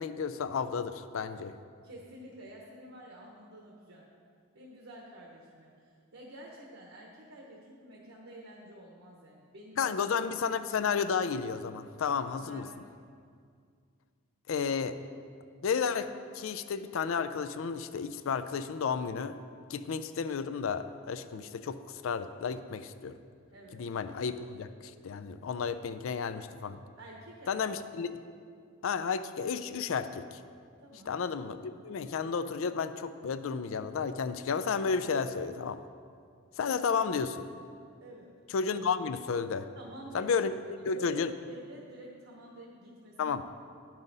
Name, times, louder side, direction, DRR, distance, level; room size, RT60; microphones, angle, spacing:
voice 1, 0.0-1.5 9.8-12.7 14.5-15.0 15.6-16.1 16.3-19.4 19.7-23.1 23.8-26.8 27.5-28.1 28.8-30.4 31.1-35.8 36.6-37.5 38.5-39.7 40.1-40.6 40.9-41.3 43.2-43.4, left 6 dB, 70° left, 12 dB, 0.4 m, -32 dB
voice 2, 1.8-4.1 4.5-9.8 12.3-12.7 23.5-23.8 27.0-27.6 30.8-31.1 38.0-38.3 39.7-40.3 40.8-41.2 41.5-43.4, right 1 dB, 65° right, -1 dB, 1.0 m, -49 dB
11.0 x 5.6 x 4.0 m, 2.2 s
head